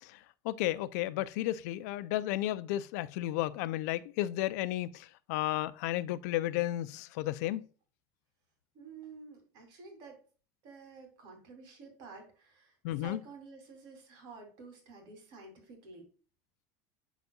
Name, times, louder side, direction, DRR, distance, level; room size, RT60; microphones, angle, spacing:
voice 1, 0.4-7.6 12.8-13.2, left 15 dB, 80° left, 0.5 m, -33 dB
voice 2, 8.7-10.2 10.6-16.1, right 4 dB, 55° right, 3.1 m, -51 dB
12.0 x 4.1 x 2.3 m
cardioid pair, 160°, 9 cm